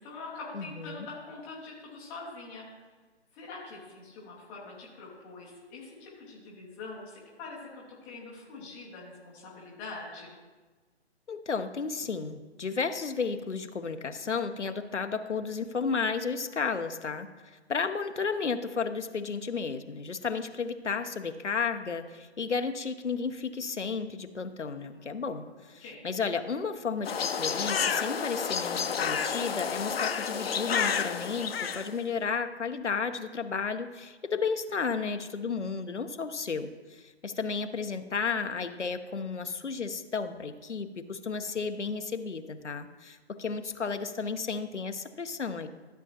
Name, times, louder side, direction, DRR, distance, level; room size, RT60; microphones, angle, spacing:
voice 1, 0.0-2.7 3.3-10.4 24.9-25.0 25.8-26.1, left 3 dB, 5° left, -6 dB, 0.5 m, -44 dB
voice 2, 0.5-1.1 11.3-45.7, left 5 dB, 90° left, 8 dB, 0.9 m, -33 dB
sound 1, 27.0-31.9, left 6 dB, 60° left, 0.7 m, -30 dB
12.5 x 7.2 x 2.8 m, 1.3 s
figure-of-eight pair, 145°, 34 cm